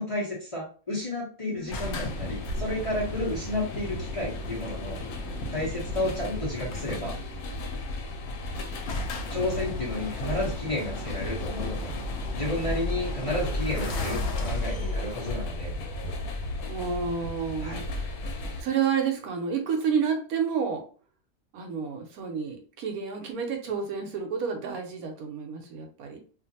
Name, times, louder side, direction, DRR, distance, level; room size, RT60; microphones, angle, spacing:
voice 1, 0.0-5.0 5.5-7.2 9.3-11.9 12.3-15.7 17.6-17.8, left 1 dB, 30° left, -6 dB, 0.7 m, -32 dB
voice 2, 1.5-2.1 6.0-6.2 13.7-14.8 16.7-18.1 18.6-20.8 21.5-26.2, right 6 dB, 80° right, 3 dB, 1.1 m, -31 dB
sound 1, 1.7-18.6, left 2 dB, 85° left, 1.1 m, -35 dB
sound 2, 1.7-7.2 8.2-8.3 8.5-8.6 8.8-16.3, left 1 dB, 65° left, 0.7 m, -36 dB
sound 3, 13.1-15.4, right 3 dB, 45° right, 0.7 m, -42 dB
2.5 x 2.5 x 2.7 m, 0.40 s
omnidirectional pair, 1.5 m